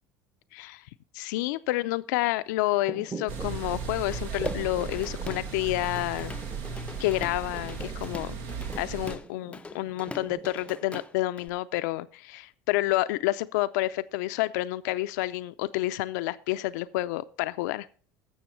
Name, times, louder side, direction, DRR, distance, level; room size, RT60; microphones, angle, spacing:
voice 1, 0.5-0.8 1.1-6.3 7.0-8.3 8.8-17.9, left 17 dB, 75° left, 13 dB, 0.5 m, -29 dB
sound 1, 2.7-11.0, right 2 dB, 20° right, 1.1 m, -43 dB
sound 2, 3.3-9.2, right 5 dB, 70° right, 1.6 m, -36 dB
Drum kit / Drum, 4.1-5.5 5.8-11.5, left 3 dB, 15° left, 0.5 m, -43 dB
15.0 x 6.2 x 4.4 m, 0.40 s
hypercardioid pair, 85°, 9 cm